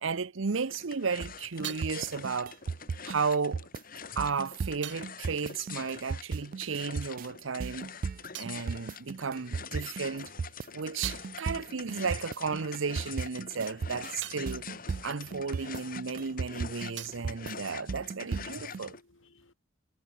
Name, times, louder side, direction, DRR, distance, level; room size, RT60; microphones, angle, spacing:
voice 1, 0.0-2.5 3.0-3.7 4.2-7.9 8.4-10.3 10.7-14.7 15.0-19.0, right 5 dB, 90° right, 0.7 m, -33 dB
sound 1, 0.7-19.0, left 6 dB, 45° left, 2.7 m, -45 dB
sound 2, 1.2-18.8, right 5 dB, 45° right, 0.3 m, -36 dB
sound 3, 4.6-6.8 7.1-9.8 10.2-16.2 16.5-18.5, right 13 dB, 65° right, 4.0 m, -49 dB
voice 2, 14.0-19.5, left 2 dB, 85° left, 2.9 m, -64 dB
head